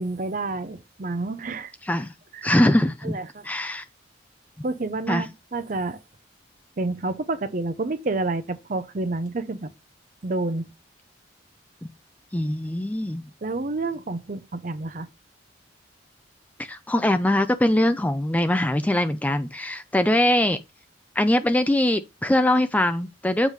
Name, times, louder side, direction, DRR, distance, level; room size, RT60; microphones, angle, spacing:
voice 1, 0.0-1.7 2.3-2.5 3.0-3.5 4.6-6.0 6.8-9.7 10.2-10.7 13.4-15.1, right 3 dB, 45° right, 0.6 m, -29 dB
voice 2, 2.4-3.2 3.4-3.8 5.1-5.2 12.3-13.2 16.6-20.6 21.2-23.5, left 1 dB, 10° left, 0.3 m, -22 dB
7.4 x 3.1 x 5.1 m
head